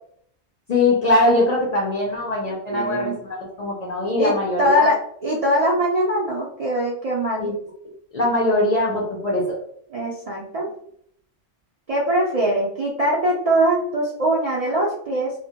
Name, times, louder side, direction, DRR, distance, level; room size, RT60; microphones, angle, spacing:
voice 1, 0.7-4.9 7.4-7.5 8.1-9.6, left 2 dB, 50° left, -2 dB, 0.5 m, -21 dB
voice 2, 2.7-3.2 4.2-5.0 5.2-7.5 9.9-10.7 11.9-15.3, right 1 dB, 55° right, -4 dB, 0.4 m, -22 dB
2.1 x 2.1 x 2.7 m, 0.66 s
omnidirectional pair, 1.1 m